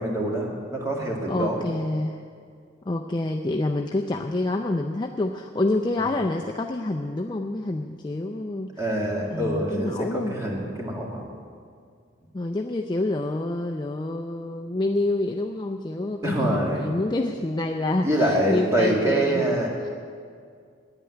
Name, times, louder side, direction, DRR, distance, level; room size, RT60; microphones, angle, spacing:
voice 1, 0.0-1.7 6.0-6.1 8.8-11.4 16.2-16.9 18.0-19.9, right 1 dB, 15° right, -2 dB, 2.0 m, -25 dB
voice 2, 1.3-2.2 2.9-8.9 9.3-10.3 12.3-19.6 19.8-19.9, left 2 dB, 20° left, 3 dB, 0.4 m, -27 dB
10.0 x 8.9 x 9.7 m, 2.2 s
head